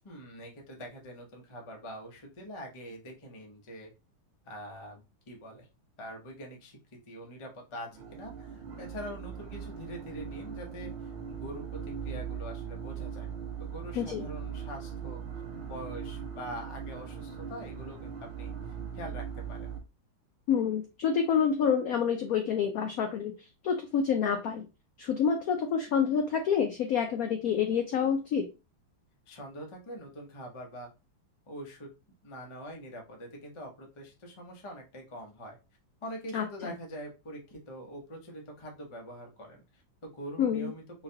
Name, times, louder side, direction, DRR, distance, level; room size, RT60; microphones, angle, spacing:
voice 1, 0.0-3.9 4.4-5.7 6.0-13.3 13.6-15.2 15.7-18.5 18.9-19.7 29.3-30.9 31.5-31.9 32.2-35.6 36.0-41.0, equal, 50° left, 1 dB, 0.3 m, -44 dB
sound 1, 7.9-19.8, right 7 dB, 70° right, 0.6 m, -40 dB
voice 2, 20.5-23.3 23.6-24.6 25.0-28.4 36.3-36.7 40.4-40.7, left 7 dB, 90° left, 5 dB, 0.7 m, -28 dB
3.9 x 3.1 x 2.7 m, 0.27 s
omnidirectional pair, 2.2 m